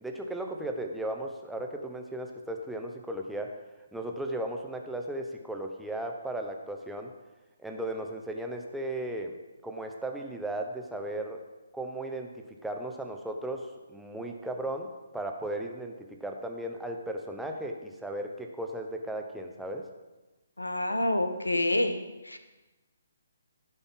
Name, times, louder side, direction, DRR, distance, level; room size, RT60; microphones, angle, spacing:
voice 1, 0.0-3.6 3.9-7.1 7.6-9.4 9.6-11.4 11.7-19.9, right 1 dB, 5° right, 2 dB, 0.9 m, -36 dB
voice 2, 20.6-22.0 22.2-22.4, left 1 dB, 85° left, 8 dB, 1.1 m, -27 dB
15.5 x 5.5 x 3.7 m, 1.1 s
figure-of-eight pair, 140°, 0 cm